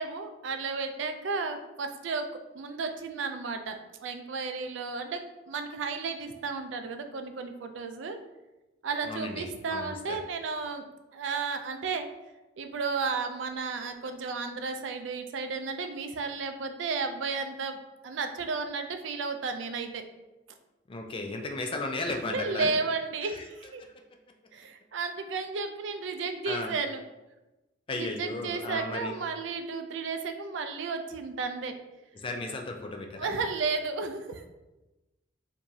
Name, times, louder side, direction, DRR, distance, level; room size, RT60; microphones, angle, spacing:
voice 1, 0.0-8.2 8.8-10.8 11.1-12.1 12.6-17.8 18.0-20.1 22.1-23.9 24.5-27.0 27.9-31.8 33.2-34.4, right 4 dB, 70° right, 7 dB, 0.4 m, -33 dB
voice 2, 9.1-10.2 20.9-22.7 23.3-23.4 23.8-23.9 26.5-26.7 27.9-29.1 32.2-33.4, left 2 dB, 25° left, 3 dB, 0.4 m, -35 dB
4.6 x 2.6 x 2.7 m, 1.0 s
head